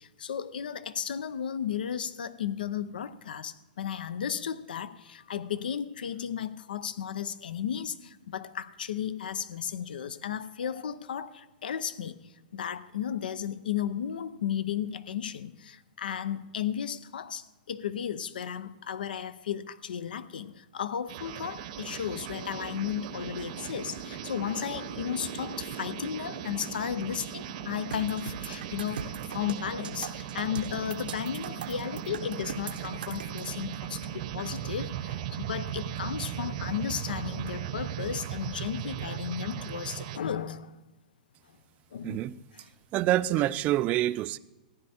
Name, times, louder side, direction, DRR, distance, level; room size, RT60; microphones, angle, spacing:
voice 1, 0.0-40.7 41.9-42.3 42.5-42.7, left 8 dB, 85° left, 16 dB, 0.6 m, -34 dB
sound 1, 21.1-40.2, right 10 dB, 50° right, 0.8 m, -38 dB
sound 2, 27.9-33.5, right 7 dB, 85° right, 0.9 m, -40 dB
voice 2, 42.0-42.4 42.9-44.4, right 14 dB, 30° right, 16 dB, 0.4 m, -26 dB
15.0 x 9.9 x 4.3 m, 1.1 s
hypercardioid pair, 135°, 5 cm